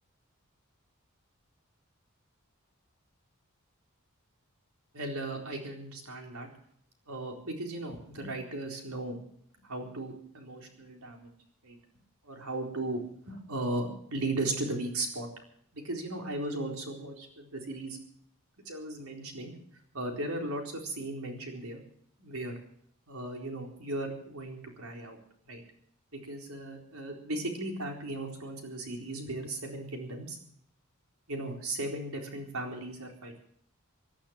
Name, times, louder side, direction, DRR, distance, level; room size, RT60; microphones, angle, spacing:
voice 1, 4.9-6.5 7.1-9.2 9.6-11.3 11.6-11.8 12.3-15.3 15.7-18.0 18.7-19.5 19.9-21.8 22.2-22.5 23.1-25.2 25.5-25.6 26.1-30.4 31.3-33.4, right 2 dB, 90° right, 2 dB, 4.1 m, -36 dB
18.0 x 11.5 x 6.4 m, 0.64 s
head